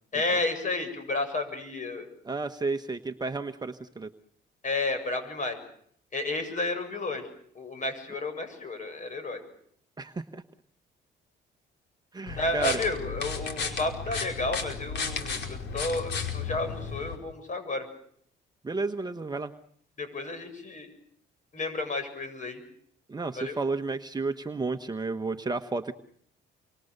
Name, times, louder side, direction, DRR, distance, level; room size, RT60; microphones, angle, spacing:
voice 1, 0.1-2.1 4.6-5.6 6.1-7.3 7.5-9.4 12.4-17.9 20.0-20.9 21.5-22.6 23.3-23.6, left 2 dB, 40° left, 9 dB, 7.5 m, -31 dB
voice 2, 2.3-4.1 10.0-10.4 12.1-12.8 18.6-19.5 23.1-25.9, right 3 dB, 20° right, 6 dB, 1.3 m, -32 dB
sound 1, 12.3-17.2, left 5 dB, 65° left, 5.0 m, -34 dB
28.5 x 25.0 x 6.8 m, 0.66 s
cardioid pair, 100°, 20 cm